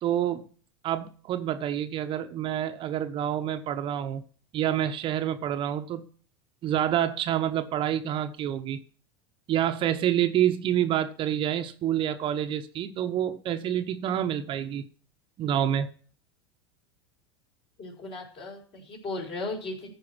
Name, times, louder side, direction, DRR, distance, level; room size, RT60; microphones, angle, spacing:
voice 1, 0.0-0.5 0.8-4.2 4.5-6.1 6.6-8.8 9.5-14.8 15.4-15.9, right 10 dB, 40° right, 0.9 m, -27 dB
voice 2, 17.8-19.9, left 2 dB, 45° left, 5.0 m, -36 dB
14.5 x 4.8 x 6.0 m
hypercardioid pair, 90°, 13 cm